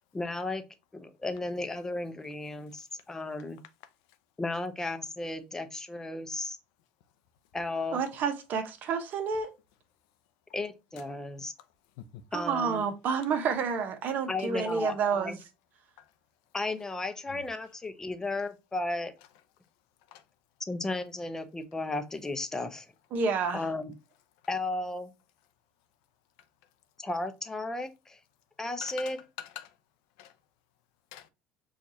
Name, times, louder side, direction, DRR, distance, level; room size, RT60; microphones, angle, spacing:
voice 1, 0.1-0.6 0.9-3.6 4.4-6.6 7.5-8.0 10.5-11.5 12.3-12.8 14.3-15.4 16.5-19.1 20.7-22.9 23.5-23.9 24.5-25.1 27.0-28.2 28.6-29.2, left 2 dB, 15° left, 0.6 m, -34 dB
voice 2, 7.9-9.5 12.3-15.4 23.1-23.6, right 5 dB, 55° right, 0.8 m, -29 dB
voice 3, 28.8-29.7 30.2-30.3 31.1-31.3, left 11 dB, 85° left, 0.4 m, -44 dB
4.6 x 2.4 x 2.6 m
supercardioid pair, 100°, 3 cm